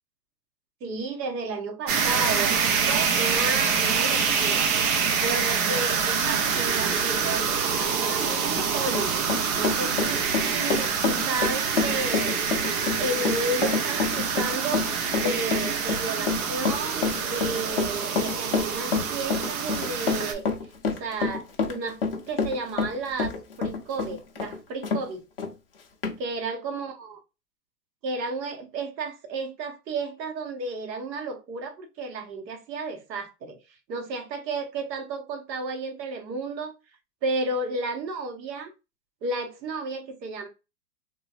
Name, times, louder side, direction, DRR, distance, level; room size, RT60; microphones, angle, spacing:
voice 1, 0.8-4.7 5.2-9.2 9.5-12.4 13.0-14.9 15.1-20.5 20.8-22.0 22.3-25.2 26.2-27.2 28.0-33.6 33.9-36.7 37.2-38.7 39.2-40.5, right 3 dB, 80° right, 1.1 m, -32 dB
sound 1, 1.9-20.3, right 6 dB, 60° right, 0.7 m, -26 dB
Run, 8.4-25.0 25.4-25.5 26.0-26.2, left 4 dB, 40° left, 0.4 m, -28 dB
3.1 x 2.3 x 2.3 m
supercardioid pair, 175°, 50 cm